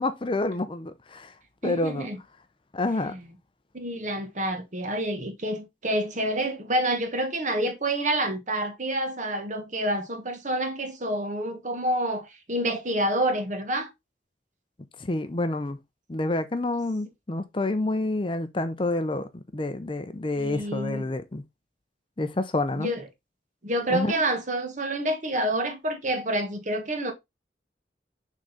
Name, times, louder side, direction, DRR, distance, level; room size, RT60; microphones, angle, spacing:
voice 1, 0.0-1.3 1.6-2.1 2.7-3.1 15.0-15.8 16.1-21.4 22.2-22.9 23.9-24.2, left 2 dB, 30° left, 0.6 m, -28 dB
voice 2, 1.6-2.2 3.1-3.3 3.7-13.9 20.4-21.0 22.8-23.0 23.6-27.1, right 1 dB, 45° right, 1.4 m, -28 dB
6.4 x 3.8 x 4.0 m
head